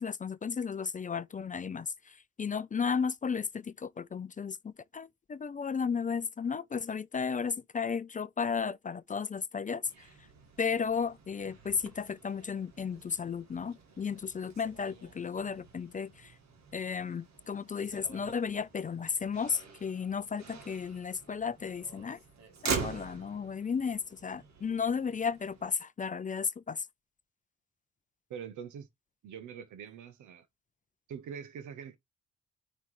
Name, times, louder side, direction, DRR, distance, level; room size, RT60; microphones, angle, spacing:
voice 1, 0.0-10.3 10.6-16.4 16.7-22.2 22.6-26.9, left 6 dB, 25° left, 0.5 m, -34 dB
Motor vehicle (road), 9.8-25.7, right 5 dB, 60° right, 1.8 m, -44 dB
voice 2, 28.3-28.9 29.2-30.5 31.1-32.0, right 7 dB, 80° right, 1.1 m, -43 dB
9.5 x 3.4 x 3.1 m
cardioid pair, 90°, 30 cm